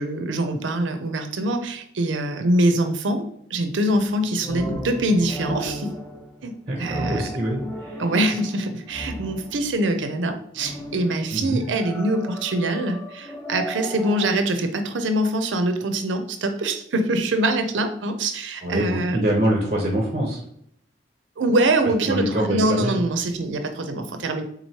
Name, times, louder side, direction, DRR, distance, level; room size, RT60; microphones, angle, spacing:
voice 1, 0.0-5.9 6.4-6.5 6.8-7.3 8.0-19.3 21.4-24.4, right 1 dB, 85° right, 7 dB, 0.5 m, -24 dB
sound 1, 3.9-9.8 10.5-14.3, equal, 15° left, 0.6 m, -36 dB
voice 2, 6.7-8.0 11.3-11.6 18.6-20.4 22.0-22.9, right 1 dB, 35° right, 0 dB, 0.6 m, -24 dB
3.9 x 3.0 x 2.8 m, 0.69 s
head